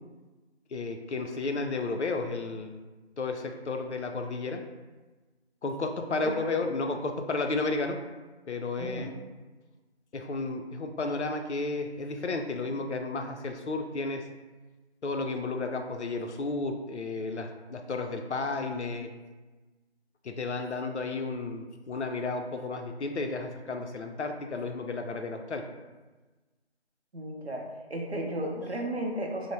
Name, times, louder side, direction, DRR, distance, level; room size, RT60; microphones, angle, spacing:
voice 1, 0.7-2.8 3.2-4.6 5.6-8.0 8.5-9.1 10.1-14.2 15.0-19.1 20.2-25.6, left 3 dB, 85° left, 5 dB, 0.5 m, -32 dB
voice 2, 6.1-6.7 8.8-9.1 27.1-29.5, right 1 dB, 70° right, 1 dB, 0.6 m, -34 dB
3.0 x 2.0 x 3.3 m, 1.2 s
figure-of-eight pair, 175°, 34 cm